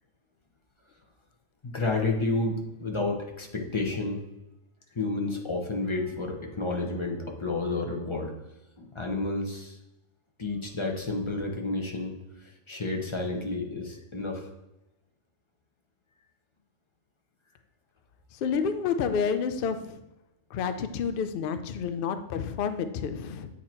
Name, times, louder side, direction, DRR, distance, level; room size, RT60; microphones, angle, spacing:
voice 1, 1.6-4.2 4.9-8.3 8.8-9.8 10.4-12.1 12.4-14.5, left 2 dB, 30° left, 1 dB, 0.7 m, -30 dB
voice 2, 18.3-20.0 20.5-23.5, left 6 dB, 70° left, 9 dB, 0.5 m, -29 dB
8.4 x 2.9 x 4.4 m, 0.94 s
omnidirectional pair, 1.5 m